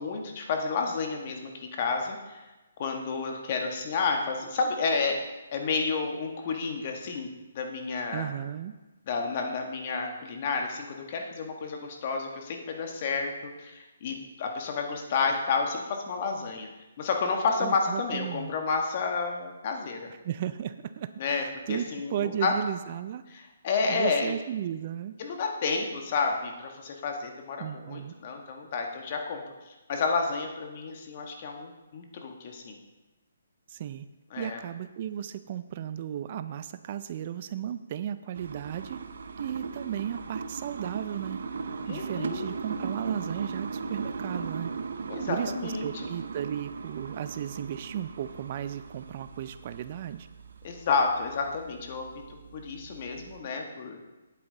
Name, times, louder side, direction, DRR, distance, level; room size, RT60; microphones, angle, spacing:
voice 1, 0.0-2.4 2.8-5.2 5.5-7.3 7.5-8.3 9.1-16.7 17.0-20.1 21.2-22.5 23.3-24.4 25.2-29.4 29.9-32.8 34.3-34.6 41.9-42.5 45.1-45.9 50.6-54.0, left 4 dB, 40° left, 3 dB, 1.5 m, -30 dB
voice 2, 8.1-8.7 17.6-18.5 20.2-23.2 23.9-25.1 27.6-28.1 33.7-34.1 34.4-39.0 39.4-41.4 41.9-44.7 45.3-50.3, right 10 dB, 40° right, 13 dB, 0.4 m, -35 dB
sound 1, 38.3-53.4, right 5 dB, 65° right, 0.7 m, -38 dB
9.0 x 8.4 x 4.0 m, 1.1 s
hypercardioid pair, 155°, 0 cm